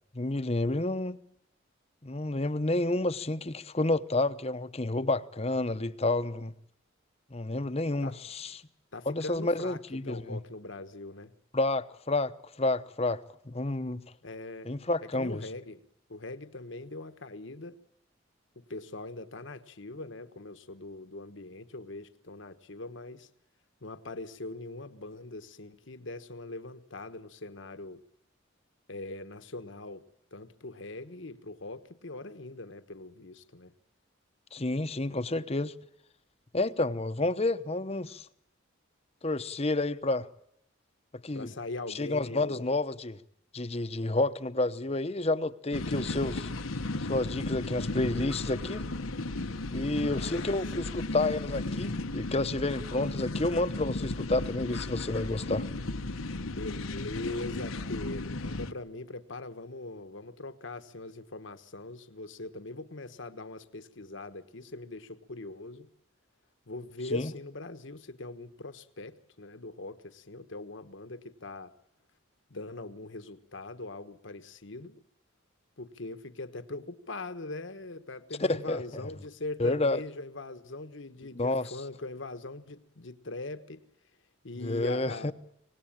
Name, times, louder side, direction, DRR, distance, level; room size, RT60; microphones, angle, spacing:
voice 1, 0.1-1.2 2.0-6.5 7.3-8.6 9.1-10.4 11.5-14.0 14.6-15.5 34.5-35.7 36.5-38.3 39.2-40.3 41.2-41.5 41.9-43.2 43.5-46.5 47.1-48.8 49.7-55.7 67.1-67.3 78.5-78.8 79.6-80.0 81.3-81.7 84.6-85.3, left 2 dB, 30° left, 0.9 m, -30 dB
voice 2, 8.9-11.3 14.2-14.7 15.0-15.8 16.1-17.8 18.5-23.3 23.8-28.0 28.9-30.0 30.3-33.7 41.3-42.7 49.9-50.6 56.5-65.9 66.7-71.7 72.5-75.0 75.8-83.8 84.4-85.3, left 2 dB, 65° left, 1.3 m, -41 dB
sound 1, 45.7-58.7, left 2 dB, 85° left, 1.2 m, -35 dB
25.0 x 19.0 x 8.8 m
head